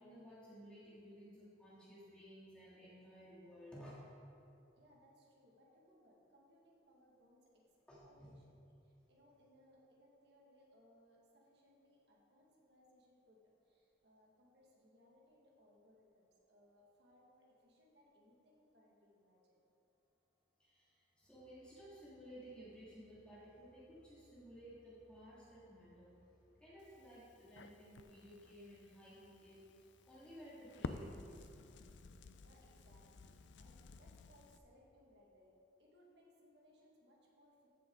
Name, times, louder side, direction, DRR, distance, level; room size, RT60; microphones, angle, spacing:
voice 1, 0.0-4.0 7.9-8.3 20.6-26.1 26.6-31.5, equal, 5° left, -10 dB, 2.7 m, -56 dB
voice 2, 4.7-7.6 8.0-19.7 32.1-37.7, equal, 65° right, -2 dB, 2.1 m, -68 dB
sound 1, 21.2-34.6, equal, 40° left, 2.3 m, -72 dB
Crackle, 26.8-34.6, left 3 dB, 75° left, 0.5 m, -52 dB
14.5 x 7.0 x 4.0 m, 2.7 s
head